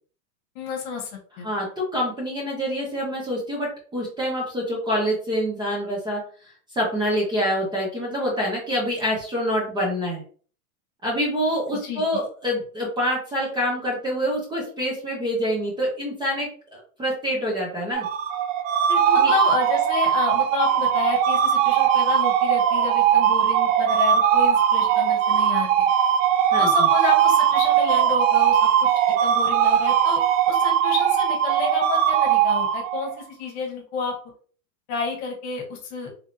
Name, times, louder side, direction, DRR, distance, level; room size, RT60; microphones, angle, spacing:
voice 1, 0.5-1.1 1.4-1.5 11.7-12.2 18.9-25.9 26.6-30.2 30.5-34.1 34.9-36.1, left 5 dB, 50° left, 1 dB, 1.2 m, -30 dB
voice 2, 1.4-6.2 6.7-10.2 11.0-18.1 19.2-19.3 26.5-26.9, equal, 10° right, -3 dB, 0.8 m, -26 dB
sound 1, 17.9-33.2, right 9 dB, 60° right, 0.5 m, -20 dB
3.3 x 2.7 x 2.6 m, 0.43 s
supercardioid pair, 145°, 44 cm